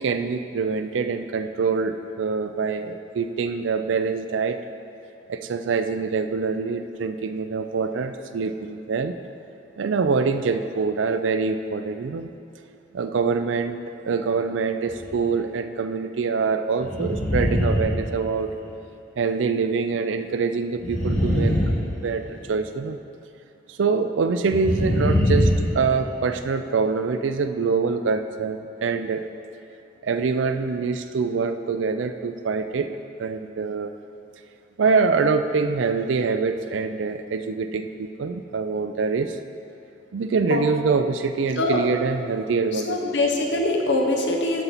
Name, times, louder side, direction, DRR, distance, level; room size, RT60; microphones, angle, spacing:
voice 1, 0.0-4.6 5.3-9.2 9.8-12.3 12.9-18.5 19.2-21.6 21.8-23.0 23.7-29.2 30.0-33.9 34.8-39.4 40.1-43.0, right 5 dB, 90° right, 9 dB, 0.4 m, -25 dB
sound 1, 14.9-15.3 16.8-18.7 20.8-22.5 24.4-26.4, equal, 40° left, 1.3 m, -23 dB
voice 2, 42.8-44.6, left 2 dB, 70° left, 1 dB, 0.9 m, -23 dB
12.5 x 4.4 x 4.1 m, 2.8 s
head